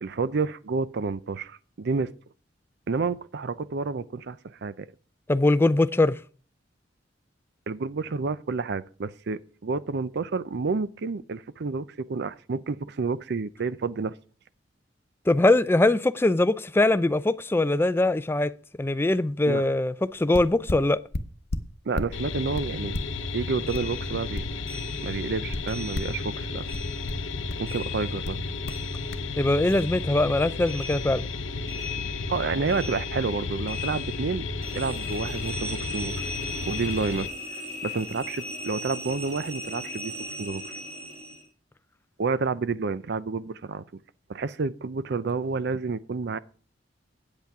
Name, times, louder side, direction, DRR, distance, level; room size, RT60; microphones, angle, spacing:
voice 1, 0.0-2.1 2.9-4.9 7.7-14.1 19.5-19.6 21.8-23.0 23.3-24.4 25.0-26.7 27.6-28.4 32.3-34.5 34.7-36.2 36.6-37.3 37.8-40.6 42.2-43.8 44.3-46.4, right 4 dB, 60° right, 0.5 m, -29 dB
voice 2, 5.3-6.2 15.3-18.5 18.8-21.0 29.4-31.2, left 2 dB, 10° left, 0.4 m, -22 dB
sound 1, 20.0-20.1 20.3-22.2 22.5-24.8 25.1-26.2 26.7-27.7 28.2-28.8 29.1-29.3, left 2 dB, 55° left, 0.8 m, -34 dB
sound 2, 22.1-37.3, left 3 dB, 85° left, 0.8 m, -33 dB
sound 3, 23.7-26.4 26.6-29.4 29.7-41.5, left 2 dB, 35° right, 2.4 m, -39 dB
8.8 x 8.2 x 4.7 m
head